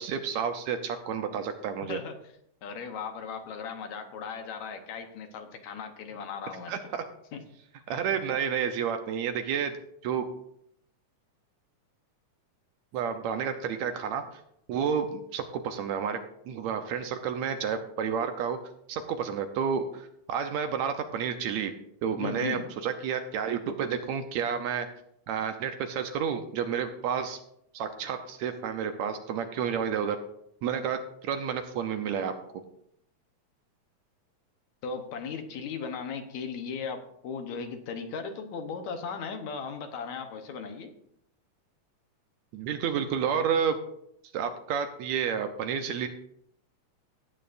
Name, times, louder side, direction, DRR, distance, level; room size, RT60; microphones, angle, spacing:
voice 1, 0.0-2.0 6.7-7.0 7.9-9.8 10.0-10.3 12.9-14.2 14.7-18.6 18.9-21.7 22.0-24.9 25.3-27.4 27.7-30.2 30.6-32.3 42.5-43.8 44.3-46.1, right 7 dB, 75° right, 7 dB, 1.9 m, -30 dB
voice 2, 1.9-2.3 2.6-6.9 7.3-7.4 22.2-22.7 34.8-40.9, left 5 dB, 70° left, 6 dB, 2.2 m, -37 dB
17.5 x 9.0 x 2.6 m, 0.73 s
omnidirectional pair, 3.5 m